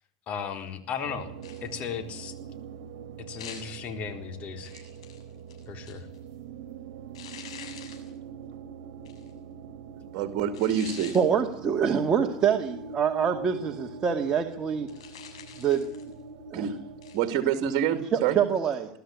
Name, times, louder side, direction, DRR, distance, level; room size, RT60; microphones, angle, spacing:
voice 1, 0.3-1.3 1.6-2.3 3.3-4.7 5.7-6.1, left 7 dB, 45° left, 7 dB, 4.1 m, -35 dB
sound 1, 1.0-17.4, right 5 dB, 75° right, 1.8 m, -43 dB
sound 2, 1.4-1.9 3.4-3.8 4.6-6.2 7.1-8.1 9.0-9.3 10.5-11.3 14.9-16.1 17.0-17.2, left 8 dB, 90° left, 7.3 m, -45 dB
voice 2, 9.9-11.2 16.5-16.7 17.1-18.4, right 9 dB, 55° right, 8 dB, 2.4 m, -27 dB
voice 3, 11.1-14.9 15.6-15.9 16.5-16.7 18.4-18.9, right 7 dB, 30° right, 2 dB, 2.2 m, -25 dB
22.0 x 13.0 x 9.8 m, 0.69 s
supercardioid pair, 110°, 3 cm